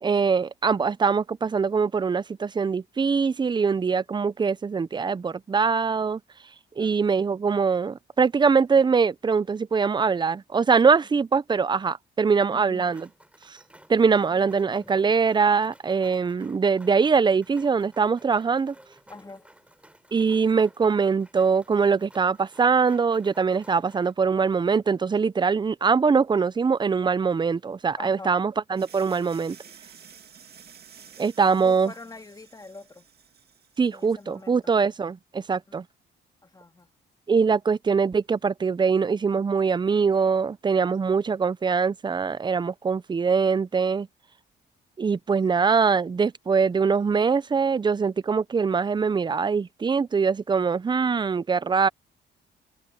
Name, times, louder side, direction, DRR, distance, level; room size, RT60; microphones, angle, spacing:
voice 1, 0.0-6.2 6.8-13.1 13.5-13.6 13.9-18.7 20.1-29.6 31.2-31.9 33.8-35.8 37.3-44.1 45.0-51.9, right 5 dB, 20° right, 0.5 m, -23 dB
voice 2, 12.5-13.0 14.3-15.0 19.1-19.5 28.0-28.3 29.6-29.8 31.4-33.0 33.9-34.6 35.7-35.8 36.4-36.9, left 3 dB, 20° left, 2.3 m, -44 dB
sound 1, 12.7-24.1, right 1 dB, 5° right, 3.5 m, -54 dB
sound 2, 28.8-34.5, right 8 dB, 55° right, 2.2 m, -51 dB
cardioid pair, 90°, 20 cm